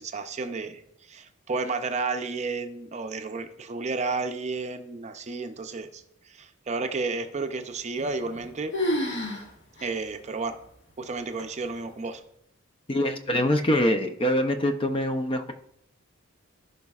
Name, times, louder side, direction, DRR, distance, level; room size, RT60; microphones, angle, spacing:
voice 1, 0.0-8.7 9.8-10.6 11.0-12.2, right 3 dB, 35° right, 7 dB, 0.6 m, -32 dB
sound 1, 7.9-8.4 8.7-9.4 9.8-9.9 10.6-10.7 11.4-11.8, left 1 dB, 60° left, 1.6 m, -29 dB
voice 2, 12.9-15.5, left 1 dB, 25° left, 7 dB, 0.5 m, -24 dB
14.5 x 5.3 x 2.4 m, 0.73 s
head